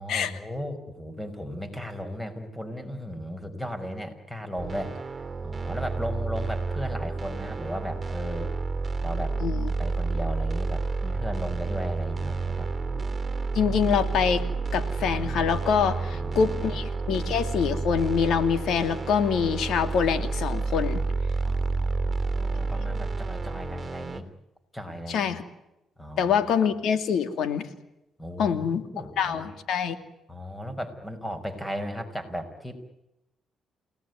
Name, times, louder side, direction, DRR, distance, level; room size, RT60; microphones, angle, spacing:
voice 1, 0.0-5.0 5.4-8.5 9.0-9.4 9.8-12.7 16.0-16.7 21.4-24.3 24.7-25.3 26.0-26.4 28.2-29.4 30.3-32.8, equal, 10° left, 8 dB, 5.4 m, -36 dB
sound 1, 4.6-24.2, right 4 dB, 25° right, 2.9 m, -30 dB
voice 2, 9.4-9.7 13.5-14.4 14.7-21.0 25.1-25.4 26.2-27.7 28.4-28.8 29.2-30.0, left 7 dB, 75° left, 9 dB, 2.7 m, -25 dB
29.5 x 18.5 x 9.6 m, 0.91 s
cardioid pair, 90°, 0 cm